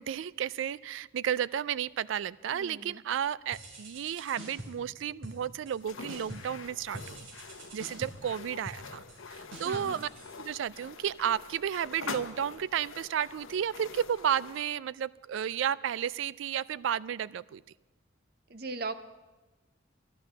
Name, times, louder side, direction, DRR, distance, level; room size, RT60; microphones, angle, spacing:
voice 1, 0.0-7.3 7.7-10.1 10.4-17.6, right 9 dB, 70° right, 20 dB, 0.3 m, -32 dB
voice 2, 2.5-3.0 8.0-8.1 9.6-10.0 18.5-18.9, right 3 dB, 50° right, 12 dB, 0.7 m, -39 dB
sound 1, 3.5-4.9 5.2-5.8 6.1-6.6 6.9-10.9, right 1 dB, 85° right, 3.0 m, -46 dB
sound 2, 5.8-14.6, left 5 dB, 85° left, 0.8 m, -45 dB
12.0 x 11.0 x 7.0 m, 1.2 s
head